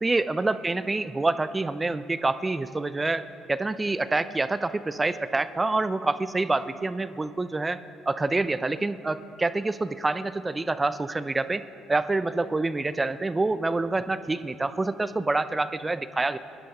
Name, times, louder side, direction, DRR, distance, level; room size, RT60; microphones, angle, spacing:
voice 1, 0.0-7.8 8.1-11.6 11.9-16.4, right 2 dB, 20° right, 13 dB, 0.5 m, -27 dB
20.5 x 10.5 x 4.2 m, 2.6 s
figure-of-eight pair, 50°, 0 cm